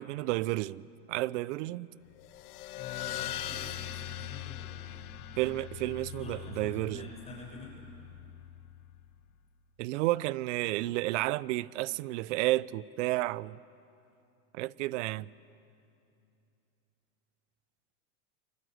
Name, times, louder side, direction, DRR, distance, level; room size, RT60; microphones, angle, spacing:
voice 1, 0.0-1.9 5.4-7.1 9.8-13.6 14.5-15.3, right 18 dB, 55° right, 0.6 m, -31 dB
sound 1, 2.2-9.2, left 12 dB, 80° left, 1.2 m, -41 dB
voice 2, 2.7-7.7, left 4 dB, 15° left, 6.6 m, -48 dB
27.5 x 25.0 x 7.9 m
supercardioid pair, 145°, 44 cm